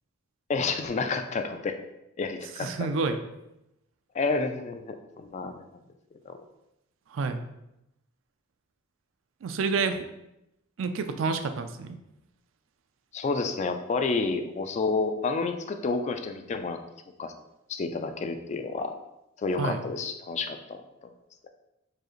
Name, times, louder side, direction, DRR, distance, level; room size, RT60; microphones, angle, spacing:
voice 1, 0.5-1.8 2.2-2.9 4.1-5.5 6.3-6.4 13.1-16.8 17.2-17.3 17.7-18.9 19.4-20.8, left 4 dB, 35° left, 7 dB, 0.3 m, -29 dB
voice 2, 2.6-3.2 7.1-7.4 9.4-10.0 10.8-12.0 19.6-19.8, right 4 dB, 70° right, 8 dB, 0.4 m, -28 dB
4.7 x 2.4 x 3.0 m, 0.88 s
head